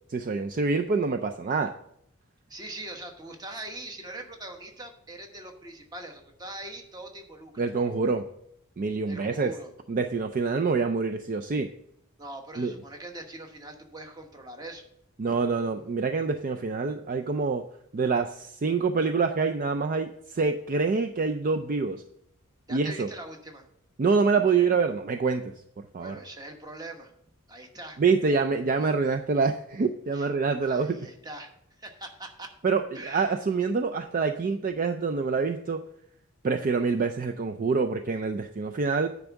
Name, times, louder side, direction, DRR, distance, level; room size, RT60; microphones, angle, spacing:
voice 1, 0.1-1.7 7.6-8.3 8.8-9.5 9.9-11.7 12.6-12.7 15.2-17.6 17.9-22.0 22.7-23.1 24.0-26.2 28.0-31.0 32.6-35.8 36.4-39.1, right 4 dB, 40° right, 6 dB, 0.4 m, -26 dB
voice 2, 2.5-7.7 9.1-9.7 12.2-14.8 22.7-23.7 25.9-27.1 27.5-28.0 30.1-30.3 30.6-32.5 32.9-33.3, right 1 dB, 20° right, 3 dB, 1.1 m, -42 dB
9.9 x 3.5 x 7.0 m, 0.71 s
head